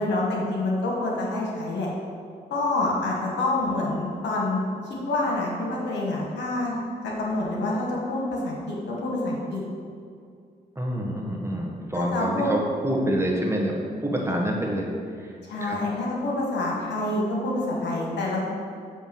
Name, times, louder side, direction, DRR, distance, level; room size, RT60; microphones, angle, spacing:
voice 1, 0.0-1.9 2.5-6.8 7.0-9.6 11.9-12.5 15.4-18.5, left 2 dB, 80° left, -3 dB, 1.4 m, -27 dB
voice 2, 10.7-14.9 15.2-15.8, equal, 15° right, -1 dB, 1.4 m, -27 dB
7.2 x 3.4 x 6.0 m, 2.3 s
supercardioid pair, 55°, 18 cm